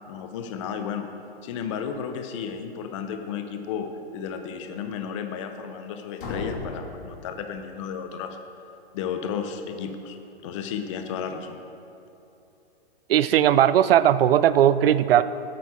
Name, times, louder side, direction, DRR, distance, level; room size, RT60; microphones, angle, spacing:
voice 1, 0.1-1.1 1.4-8.4 8.9-10.2 10.4-11.6, left 7 dB, 30° left, 7 dB, 0.6 m, -33 dB
sound 1, 6.2-8.0, left 3 dB, 55° left, 1.8 m, -36 dB
voice 2, 13.1-15.2, right 11 dB, 65° right, 15 dB, 0.4 m, -18 dB
9.3 x 8.4 x 4.3 m, 2.8 s
hypercardioid pair, 145°, 31 cm